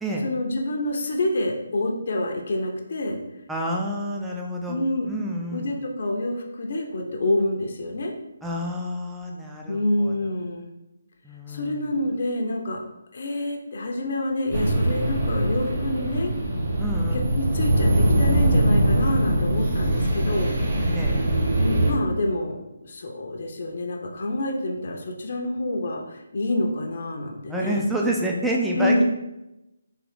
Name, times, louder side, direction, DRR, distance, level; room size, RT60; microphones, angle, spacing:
voice 1, 0.2-3.2 4.7-5.1 5.5-8.1 9.7-10.7 11.5-12.8 13.1-16.3 17.1-20.5 21.6-27.8 28.7-29.0, left 1 dB, 55° left, 1 dB, 0.6 m, -27 dB
voice 2, 3.5-4.8 5.1-5.8 8.4-10.1 11.2-11.8 16.8-17.2 20.9-21.3 27.5-29.0, right 1 dB, 5° right, -2 dB, 0.4 m, -28 dB
sound 1, 14.5-21.9, right 1 dB, 45° right, 0.9 m, -22 dB
3.6 x 2.5 x 3.5 m, 0.93 s
figure-of-eight pair, 150°, 0 cm